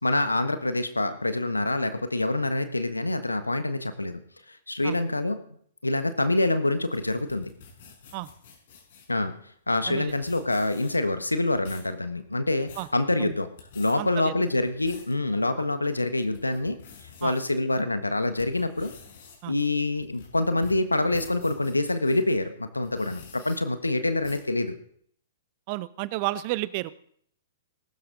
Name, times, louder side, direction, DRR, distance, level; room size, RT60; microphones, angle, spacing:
voice 1, 0.0-4.2 4.5-5.4 5.8-7.5 9.1-9.3 9.7-13.5 13.7-16.8 17.2-18.9 19.5-24.8, left 2 dB, 85° left, 9 dB, 1.4 m, -26 dB
sound 1, 6.7-9.1 9.8-9.9 10.1-11.1 11.5-11.9 12.4-12.9 13.4-13.9 14.5-15.1 15.6-15.7 16.2-17.5 18.0-22.2 22.8-23.6 24.2-24.5, left 6 dB, 55° left, 5.7 m, -49 dB
voice 2, 14.0-14.3 15.6-15.7 17.2-17.3 19.4-19.5 25.7-26.9, right 18 dB, 40° right, 16 dB, 0.9 m, -31 dB
20.5 x 12.5 x 4.0 m, 0.62 s
figure-of-eight pair, 110°, 0 cm